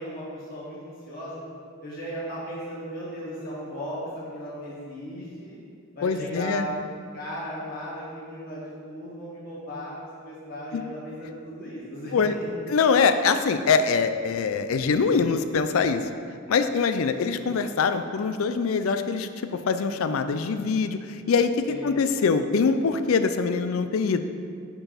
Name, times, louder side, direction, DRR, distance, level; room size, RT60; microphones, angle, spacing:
voice 1, 0.0-1.4 1.8-5.6 5.9-6.9 7.1-12.5 21.7-22.1, equal, 45° left, -9 dB, 1.7 m, -36 dB
voice 2, 6.0-6.7 10.7-10.8 12.1-12.3 12.7-16.0 16.5-24.2, left 5 dB, 85° left, 10 dB, 0.4 m, -23 dB
5.4 x 4.6 x 5.7 m, 2.2 s
head